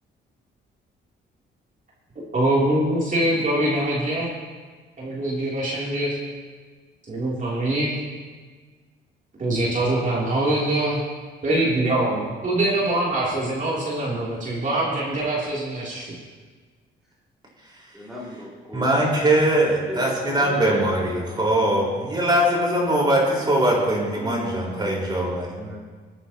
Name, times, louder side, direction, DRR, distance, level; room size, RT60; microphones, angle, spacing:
voice 1, 2.3-4.3 5.0-6.1 7.1-8.0 9.4-11.0 11.4-16.1, right 1 dB, 40° right, -6 dB, 3.1 m, -23 dB
voice 2, 17.9-19.0 19.6-21.3 24.0-25.3 25.6-25.8, equal, ahead, -7 dB, 3.1 m, -36 dB
voice 3, 18.7-25.7, right 1 dB, 20° right, -3 dB, 4.5 m, -21 dB
21.5 x 9.8 x 3.0 m, 1.5 s
cardioid pair, 90°, 20 cm